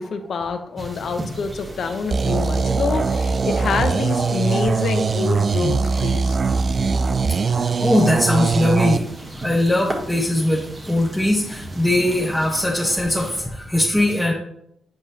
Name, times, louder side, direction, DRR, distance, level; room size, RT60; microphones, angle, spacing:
voice 1, 0.0-6.4, left 4 dB, 70° left, 7 dB, 0.9 m, -26 dB
sound 1, 0.8-13.4, right 1 dB, 30° right, 1.4 m, -36 dB
sound 2, 2.1-9.0, right 5 dB, 50° right, 0.4 m, -21 dB
voice 2, 7.3-9.0 9.4-14.3, left 1 dB, 10° left, -3 dB, 1.1 m, -20 dB
8.5 x 4.9 x 2.9 m, 0.75 s
cardioid pair, 95°, 0 cm